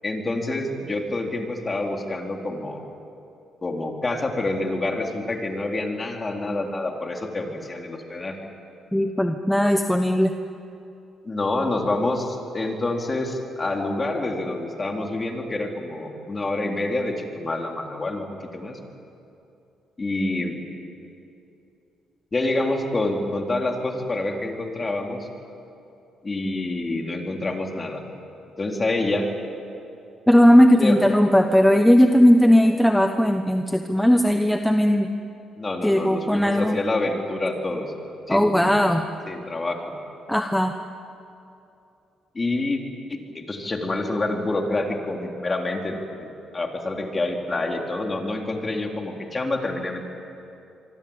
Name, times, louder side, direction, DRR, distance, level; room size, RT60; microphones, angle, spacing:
voice 1, 0.0-2.8 3.6-8.4 11.2-18.3 18.5-18.8 20.0-20.6 22.3-25.3 26.2-28.0 28.6-29.3 30.7-31.0 35.6-37.9 38.3-38.7 39.3-39.8 42.3-42.8 43.1-46.3 46.5-50.0, left 2 dB, 25° left, 2 dB, 3.8 m, -27 dB
voice 2, 8.9-10.3 30.3-35.1 35.8-36.8 38.3-39.0 40.3-40.7, equal, 5° left, 6 dB, 1.1 m, -17 dB
25.0 x 24.5 x 8.9 m, 2.7 s
cardioid pair, 90°, 0 cm